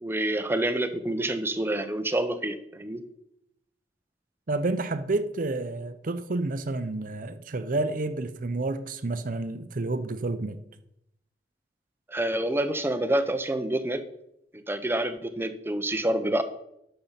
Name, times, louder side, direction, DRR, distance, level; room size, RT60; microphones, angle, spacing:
voice 1, 0.0-3.0 12.1-14.0 14.7-16.4, right 1 dB, 15° right, 0.7 m, -27 dB
voice 2, 4.5-10.6, right 2 dB, 50° right, 0.6 m, -30 dB
11.0 x 6.7 x 5.7 m
head